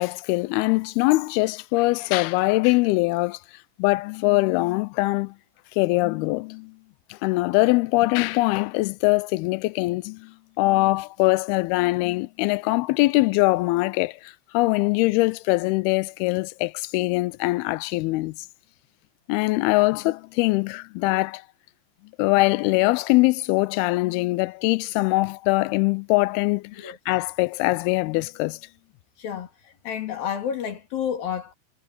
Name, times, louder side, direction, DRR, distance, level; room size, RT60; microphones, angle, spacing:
voice 1, 0.0-3.4 3.8-5.3 5.8-6.7 7.1-18.4 19.3-21.4 22.2-28.6, left 22 dB, 85° left, 2.5 m, -22 dB
voice 2, 29.2-31.5, left 8 dB, 65° left, 4.3 m, -30 dB
omnidirectional pair, 4.5 m